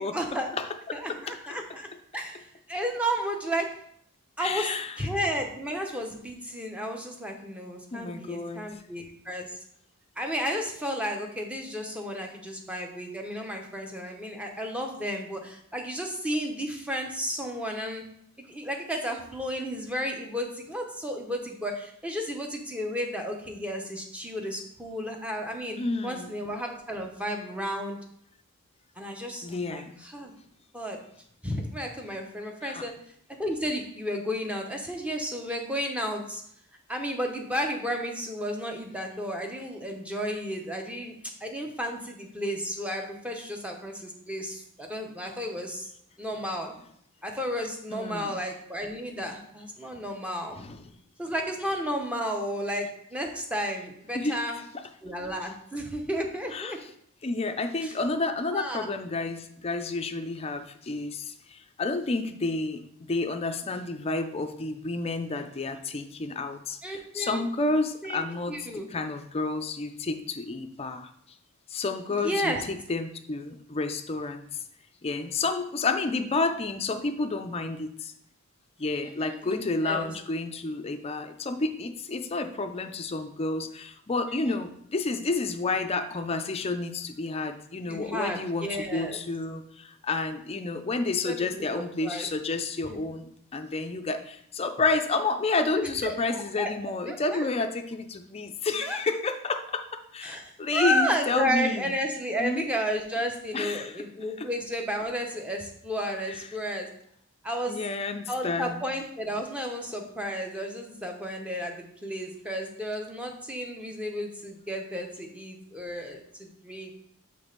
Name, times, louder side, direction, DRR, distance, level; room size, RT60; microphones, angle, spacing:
voice 1, 0.0-0.5 0.9-3.7 4.4-4.7 5.0-9.6 10.2-18.0 18.4-25.8 26.0-28.0 29.0-30.3 30.7-31.0 31.4-32.9 33.4-36.4 36.9-41.2 41.4-45.9 46.2-46.7 47.2-50.6 51.2-54.6 55.0-56.8 57.8-57.9 58.5-58.9 66.8-67.4 68.0-68.9 72.2-72.6 79.0-79.6 79.8-80.1 84.3-84.6 87.9-89.2 91.2-91.6 92.0-92.3 92.8-93.0 95.7-96.7 97.1-97.4 98.8-99.0 100.2-106.9 107.4-107.8 108.3-116.9, equal, 5° right, 2 dB, 0.7 m, -32 dB
voice 2, 0.6-1.2 4.4-4.9 7.9-8.8 25.8-26.3 29.4-30.0 32.6-32.9 47.9-48.3 50.0-50.1 50.5-50.8 54.1-54.4 56.5-56.8 57.2-62.8 63.1-71.1 71.7-74.4 75.0-78.1 78.8-101.9 102.4-102.6 103.5-103.9 104.4-104.5 106.3-106.4 107.7-108.9, left 3 dB, 25° left, 7 dB, 0.4 m, -30 dB
6.1 x 3.3 x 5.2 m, 0.69 s
head